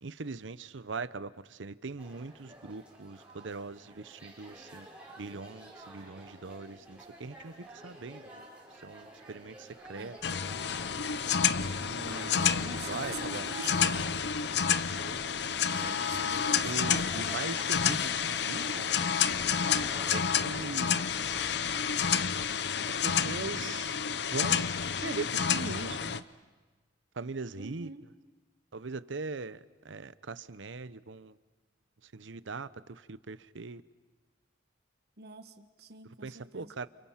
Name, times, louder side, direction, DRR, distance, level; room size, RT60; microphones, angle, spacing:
voice 1, 0.0-4.9 5.2-8.5 8.8-10.2 11.8-13.4 15.6-18.9 20.1-21.0 22.9-23.9 24.2-24.6 25.0-26.2 27.1-27.9 28.7-29.6 29.8-31.4 32.0-33.8 36.0-36.9, right 4 dB, 85° right, 0.8 m, -41 dB
sound 1, 2.0-21.8, right 1 dB, 5° right, 6.3 m, -50 dB
sound 2, 10.2-26.2, left 7 dB, 60° left, 0.7 m, -30 dB
voice 2, 12.2-14.1 15.5-17.1 23.6-23.7 27.5-28.1 35.2-36.7, right 4 dB, 55° right, 1.5 m, -46 dB
30.0 x 29.0 x 5.8 m
head